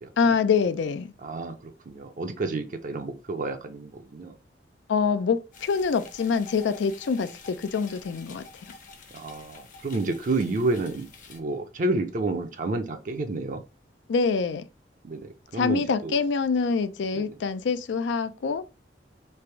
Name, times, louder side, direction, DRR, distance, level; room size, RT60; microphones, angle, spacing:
voice 1, 0.2-1.1 4.9-8.4 14.1-14.6 15.5-18.6, left 5 dB, 90° left, 0.4 m, -25 dB
voice 2, 1.2-4.3 9.1-13.6 15.0-16.1 17.1-17.3, right 2 dB, 45° right, 0.5 m, -30 dB
sound 1, 5.5-11.4, left 4 dB, 45° left, 0.7 m, -48 dB
3.3 x 2.5 x 4.5 m
head